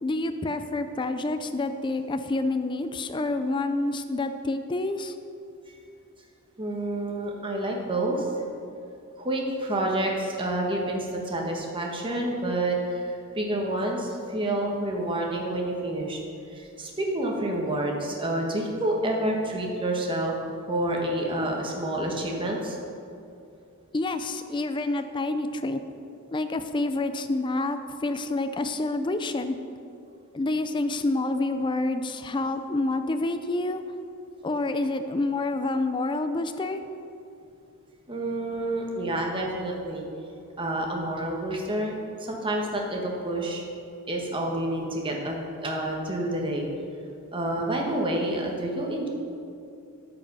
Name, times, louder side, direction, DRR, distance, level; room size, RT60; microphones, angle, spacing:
voice 1, 0.0-5.2 23.9-25.8 26.3-29.6 30.3-33.8 34.4-36.8, left 2 dB, 20° left, 9 dB, 0.4 m, -28 dB
voice 2, 6.6-8.3 9.2-16.2 16.5-20.3 20.7-22.8 38.1-40.0 40.6-43.6 44.1-45.4 45.6-46.7 47.3-49.1, right 1 dB, 25° right, 0 dB, 1.3 m, -28 dB
13.0 x 5.1 x 5.5 m, 2.6 s
head